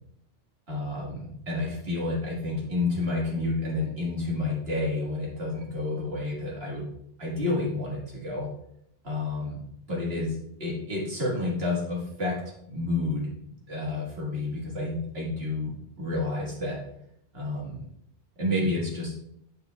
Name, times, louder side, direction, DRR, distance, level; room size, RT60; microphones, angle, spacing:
voice 1, 0.7-6.9 7.2-8.5 9.0-9.6 9.9-12.4 12.7-13.3 13.7-16.8 17.3-17.9 18.4-19.2, left 2 dB, 70° right, -4 dB, 2.0 m, -30 dB
6.8 x 6.4 x 2.3 m, 0.74 s
omnidirectional pair, 1.1 m